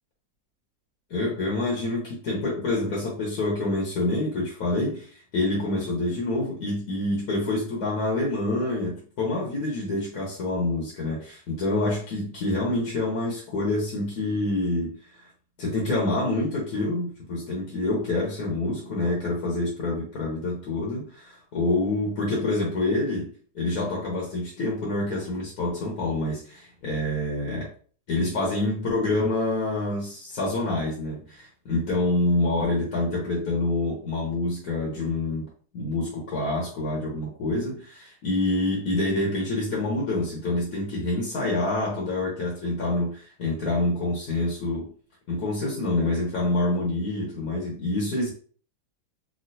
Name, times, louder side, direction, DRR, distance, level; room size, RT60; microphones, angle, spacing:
voice 1, 1.1-15.0 15.6-27.7 28.1-35.5 35.7-44.9 45.3-48.3, left 2 dB, 75° left, -3 dB, 1.4 m, -27 dB
3.1 x 2.6 x 2.7 m, 0.44 s
omnidirectional pair, 1.6 m